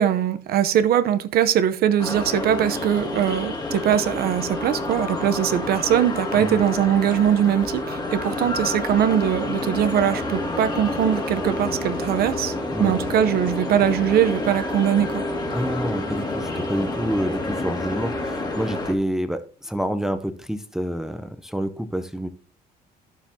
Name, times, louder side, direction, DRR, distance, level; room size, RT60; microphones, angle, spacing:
voice 1, 0.0-12.5 12.8-15.2, right 10 dB, 65° right, 0.8 m, -21 dB
sound 1, 2.0-18.9, left 2 dB, 25° left, 2.0 m, -28 dB
voice 2, 12.6-12.9 15.5-22.3, equal, 5° right, 0.7 m, -28 dB
11.5 x 7.3 x 2.8 m
cardioid pair, 110°, 17 cm